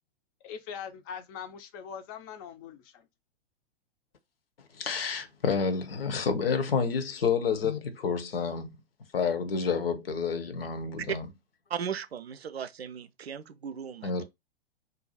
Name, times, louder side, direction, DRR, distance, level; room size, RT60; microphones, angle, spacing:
voice 1, 0.4-3.1, left 7 dB, 25° left, 0.4 m, -42 dB
voice 2, 4.6-8.8 9.1-11.3 14.0-14.2, left 5 dB, 65° left, 0.7 m, -29 dB
voice 3, 11.7-14.1, right 8 dB, 75° right, 0.5 m, -36 dB
2.7 x 2.3 x 4.0 m
figure-of-eight pair, 100°, 31 cm